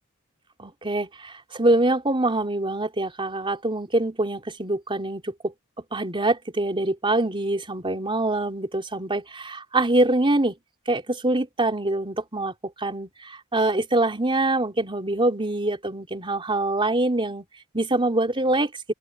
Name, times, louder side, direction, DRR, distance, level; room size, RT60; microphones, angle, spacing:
voice 1, 0.6-5.5 5.9-10.6 10.9-17.4 17.7-18.7, right 2 dB, 25° right, 3.5 m, -24 dB
open air
head